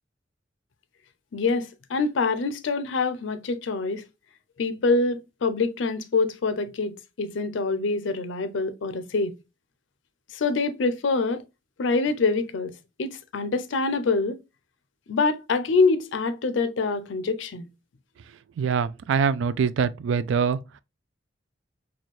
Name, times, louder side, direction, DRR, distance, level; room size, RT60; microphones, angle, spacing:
voice 1, 1.3-4.0 4.6-9.4 10.3-11.4 11.8-12.7 13.0-14.4 15.1-17.7, left 3 dB, 75° left, 0.5 m, -25 dB
voice 2, 18.6-20.6, right 6 dB, 70° right, 0.3 m, -24 dB
4.2 x 2.3 x 3.0 m
head